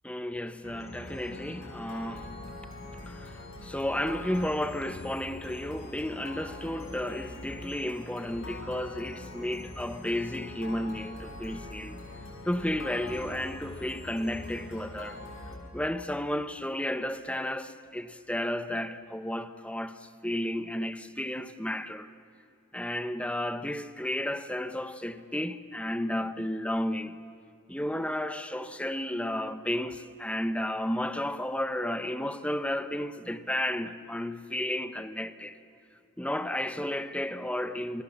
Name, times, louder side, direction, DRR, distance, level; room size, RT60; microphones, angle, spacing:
voice 1, 0.0-2.3 3.0-12.0 12.5-15.2 15.7-22.1 22.7-27.2 27.7-35.6 36.2-38.0, left 1 dB, 5° left, 1.0 m, -33 dB
sound 1, 0.6-15.6, left 2 dB, 70° left, 7.2 m, -43 dB
30.0 x 27.5 x 7.2 m
head